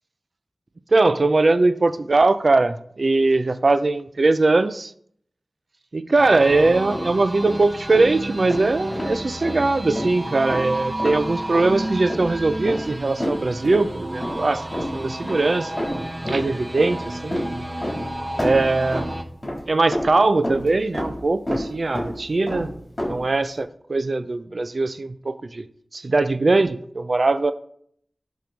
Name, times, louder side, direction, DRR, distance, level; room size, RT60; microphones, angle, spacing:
voice 1, 0.9-4.9 5.9-14.6 14.9-17.4 18.4-19.0 19.7-22.7 23.1-25.6 25.9-27.5, right 3 dB, 55° right, 13 dB, 0.5 m, -21 dB
sound 1, 6.2-19.2, right 1 dB, 25° right, 0.9 m, -32 dB
sound 2, 6.5-7.1 7.4-7.6 7.9-8.1 8.5-9.2 9.4-9.6 10.0-10.1 10.5-10.7 11.0-11.2 11.5-11.8 12.1-12.4 12.6-13.9 14.2-14.5 14.7-15.5 15.8-16.5 16.8-18.1 18.4-19.7 19.9-21.2 21.5-21.7 21.9-22.2 22.5-23.3, equal, 25° left, 4.1 m, -29 dB
11.0 x 5.4 x 4.5 m, 0.66 s
wide cardioid pair, 80°, 0 cm